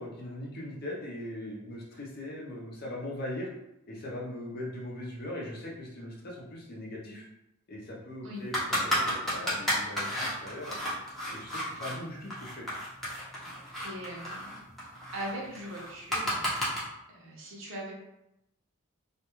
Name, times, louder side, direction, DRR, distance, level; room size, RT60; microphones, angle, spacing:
voice 1, 0.0-3.5 3.9-7.2 7.7-10.8 11.3-12.7, left 1 dB, 45° left, -3 dB, 0.6 m, -40 dB
sound 1, 8.5-12.0 12.3-16.8, equal, ahead, 0.7 m, -32 dB
voice 2, 13.8-14.6 15.1-16.4 17.1-17.9, right 1 dB, 65° right, -3 dB, 0.8 m, -40 dB
2.5 x 2.2 x 2.9 m, 0.86 s
head